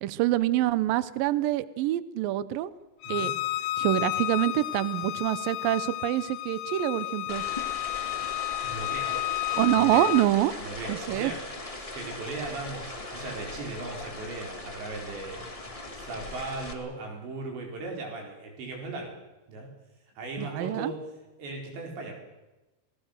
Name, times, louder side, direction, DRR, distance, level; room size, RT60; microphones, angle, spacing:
voice 1, 0.0-2.7 3.1-3.3 3.8-7.4 9.6-10.5 10.9-11.3 20.4-20.9, right 14 dB, 85° right, 16 dB, 2.0 m, -26 dB
Bowed string instrument, 3.0-10.3, left 18 dB, 75° left, 2.9 m, -32 dB
sound 1, 7.3-16.7, left 2 dB, 15° left, 1.1 m, -39 dB
voice 2, 7.7-8.0 8.6-9.3 9.7-10.1 10.6-11.4 11.9-15.4 16.0-19.2 19.5-19.7 20.2-21.0 21.4-22.2, right 3 dB, 70° right, 1 dB, 6.6 m, -38 dB
27.5 x 19.0 x 6.7 m, 1.1 s
omnidirectional pair, 5.3 m